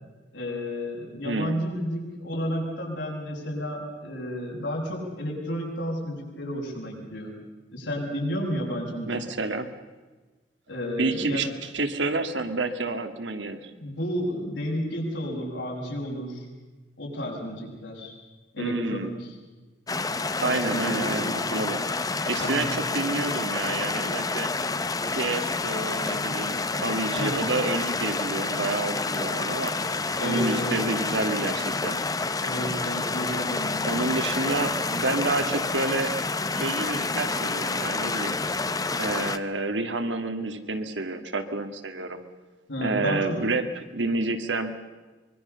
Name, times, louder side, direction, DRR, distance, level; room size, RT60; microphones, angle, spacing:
voice 1, 0.3-7.3 7.7-9.2 10.7-11.5 13.8-16.5 17.0-18.1 18.5-19.4 20.4-21.7 22.4-22.7 27.2-27.4 30.2-30.8 32.4-34.2 42.7-43.5, equal, 90° left, -2 dB, 7.5 m, -32 dB
voice 2, 1.2-1.6 9.1-9.7 11.0-13.7 18.6-19.1 20.4-21.8 22.2-24.5 25.1-29.7 30.2-32.0 33.9-36.1 36.5-38.4 39.0-42.2 42.8-44.7, right 2 dB, 75° right, 7 dB, 2.1 m, -29 dB
sound 1, 19.9-39.4, left 3 dB, 20° left, 0.9 m, -28 dB
24.5 x 22.5 x 7.0 m, 1.3 s
head